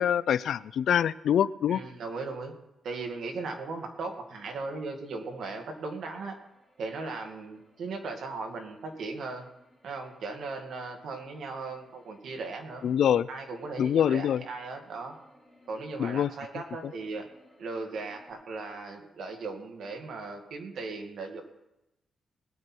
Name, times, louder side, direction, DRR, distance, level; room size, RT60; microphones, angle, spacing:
voice 1, 0.0-1.8 12.8-13.3 13.8-14.4 16.0-16.3, left 9 dB, 70° left, 17 dB, 0.4 m, -25 dB
voice 2, 1.7-2.5 2.8-6.4 6.8-9.5 9.8-15.2 15.7-17.3 17.6-21.4, right 3 dB, 70° right, 3 dB, 2.2 m, -37 dB
sound 1, 3.7-18.3, left 1 dB, 10° left, 6.7 m, -63 dB
20.0 x 9.2 x 4.6 m, 0.92 s
wide cardioid pair, 140°, 0 cm